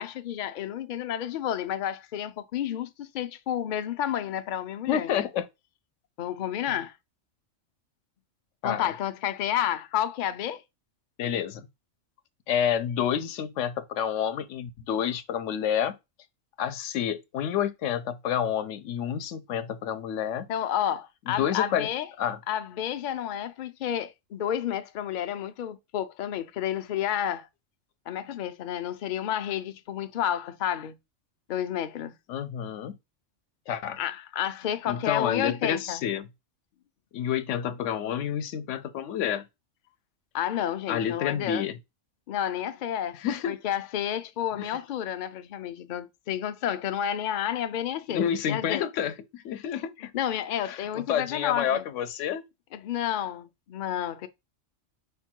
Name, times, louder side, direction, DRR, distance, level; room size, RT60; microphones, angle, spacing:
voice 1, 0.0-5.2 6.2-6.9 8.6-10.6 20.5-22.1 22.5-27.5 28.1-31.0 31.5-32.1 34.0-36.0 40.3-41.7 42.3-43.2 43.5-48.8 50.1-51.8 52.7-54.3, left 10 dB, 60° left, 0.5 m, -30 dB
voice 2, 4.9-5.5 6.7-6.8 8.6-8.9 11.2-11.7 12.5-15.9 16.6-20.5 21.3-21.9 22.2-22.4 32.3-32.9 33.7-34.0 34.9-36.3 37.1-39.4 40.9-41.8 43.1-43.6 44.5-44.8 48.1-50.1 50.6-52.4, left 9 dB, 80° left, 0.9 m, -29 dB
5.1 x 2.2 x 4.3 m
omnidirectional pair, 1.3 m